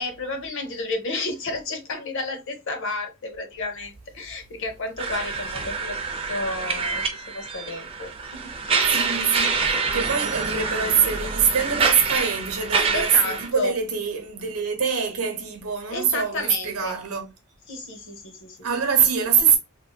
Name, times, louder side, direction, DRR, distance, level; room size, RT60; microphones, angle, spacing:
voice 1, 0.0-6.0 6.3-9.1 12.9-13.7 15.9-17.0 17.7-18.6, left 2 dB, 55° left, 0.7 m, -32 dB
sound 1, 5.0-13.5, right 4 dB, 25° right, 0.5 m, -26 dB
voice 2, 8.8-17.3 18.6-19.6, right 7 dB, 75° right, 0.9 m, -24 dB
3.8 x 2.6 x 2.2 m
head